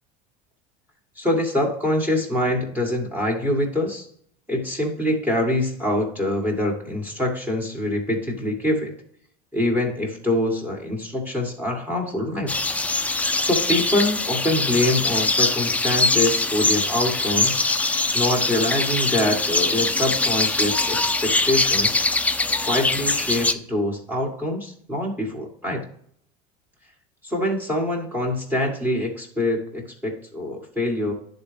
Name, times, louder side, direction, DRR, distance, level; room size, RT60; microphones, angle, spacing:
voice 1, 1.2-4.1 4.5-8.9 9.5-12.5 13.4-17.6 18.1-22.0 22.6-25.8 27.2-31.1, left 1 dB, 10° right, 0 dB, 1.8 m, -24 dB
sound 1, 12.5-23.5, left 3 dB, 5° left, 0.4 m, -22 dB
10.5 x 3.9 x 3.4 m, 0.64 s
supercardioid pair, 100°, 19 cm